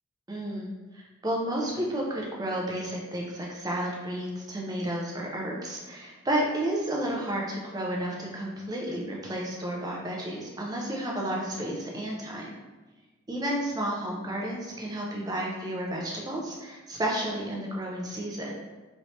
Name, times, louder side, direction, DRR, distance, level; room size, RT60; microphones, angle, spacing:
voice 1, 0.3-12.5 13.3-18.5, right 1 dB, 15° right, -2 dB, 0.5 m, -32 dB
3.2 x 3.0 x 2.7 m, 1.2 s
head